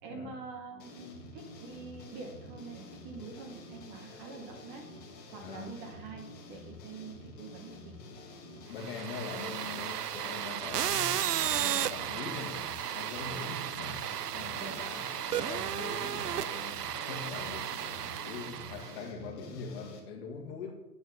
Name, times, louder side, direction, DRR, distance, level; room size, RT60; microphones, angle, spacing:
voice 1, 0.0-4.9 5.3-8.0 13.3-13.6 14.4-14.8, right 4 dB, 25° right, 1.1 m, -46 dB
sound 1, 0.8-20.0, left 2 dB, 20° left, 1.8 m, -49 dB
voice 2, 5.4-5.8 8.7-12.7 12.9-20.7, left 4 dB, 35° left, 2.0 m, -42 dB
sound 2, 8.8-19.0, right 10 dB, 75° right, 0.6 m, -34 dB
8.8 x 8.3 x 5.3 m
figure-of-eight pair, 120°, 48 cm